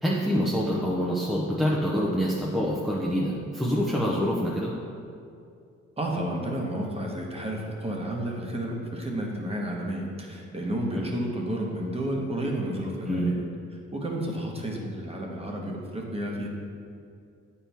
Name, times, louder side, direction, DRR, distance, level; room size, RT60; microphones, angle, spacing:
voice 1, 0.0-4.7 10.9-11.1 13.1-13.3, equal, ahead, -5 dB, 0.7 m, -26 dB
voice 2, 6.0-13.5 13.9-16.5, right 1 dB, 20° right, -1 dB, 1.2 m, -31 dB
8.5 x 4.5 x 3.5 m, 2.4 s
cardioid pair, 90°, 30 cm